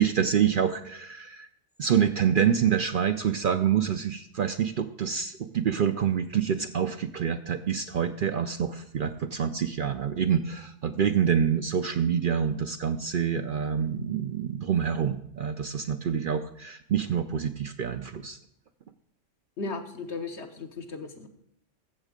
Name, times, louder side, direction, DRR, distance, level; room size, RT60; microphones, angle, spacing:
voice 1, 0.0-1.5 1.8-18.4, right 8 dB, 55° right, 9 dB, 0.6 m, -26 dB
voice 2, 19.6-21.3, left 3 dB, 65° left, 5 dB, 1.5 m, -36 dB
14.5 x 7.2 x 5.1 m, 0.73 s
omnidirectional pair, 1.3 m